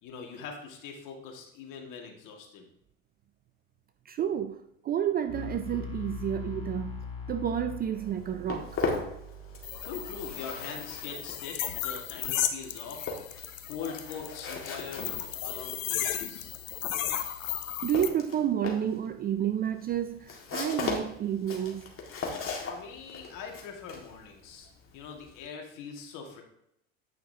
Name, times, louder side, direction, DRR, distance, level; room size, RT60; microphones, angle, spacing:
voice 1, 0.0-2.7 9.5-16.6 22.5-26.4, left 5 dB, 55° left, 2.0 m, -43 dB
voice 2, 4.1-8.8 17.8-21.9, right 9 dB, 25° right, 0.4 m, -30 dB
sound 1, 5.3-10.3, left 4 dB, 15° left, 2.6 m, -41 dB
Walk footsteps, 8.0-9.8 10.0-25.4, left 4 dB, 35° left, 1.9 m, -38 dB
sound 2, 9.6-18.1, left 11 dB, 80° left, 0.9 m, -35 dB
9.4 x 5.7 x 2.8 m
hypercardioid pair, 85°, 39 cm